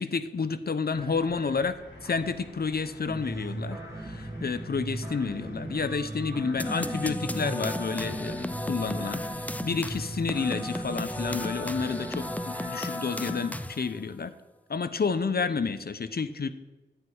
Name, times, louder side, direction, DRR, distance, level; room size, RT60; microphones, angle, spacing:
voice 1, 0.0-14.3 14.7-16.5, left 5 dB, 60° left, 13 dB, 0.8 m, -30 dB
sound 1, 0.9-12.7, left 1 dB, 75° left, 3.4 m, -49 dB
sound 2, 3.1-13.6, right 1 dB, 15° right, 2.0 m, -38 dB
sound 3, 6.6-14.0, left 1 dB, 10° left, 0.5 m, -35 dB
11.5 x 9.1 x 4.8 m, 1.2 s
wide cardioid pair, 65°, 18 cm